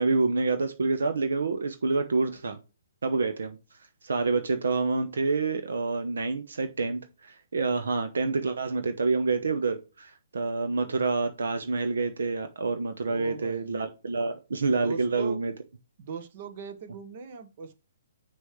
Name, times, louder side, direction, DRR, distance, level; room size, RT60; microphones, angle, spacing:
voice 1, 0.0-2.6 3.0-3.6 4.0-15.5, right 3 dB, 75° right, 0.9 m, -27 dB
voice 2, 13.1-13.9 14.8-15.4 16.0-17.7, right 6 dB, 50° right, 1.3 m, -39 dB
6.3 x 6.2 x 3.2 m
hypercardioid pair, 140°, 0 cm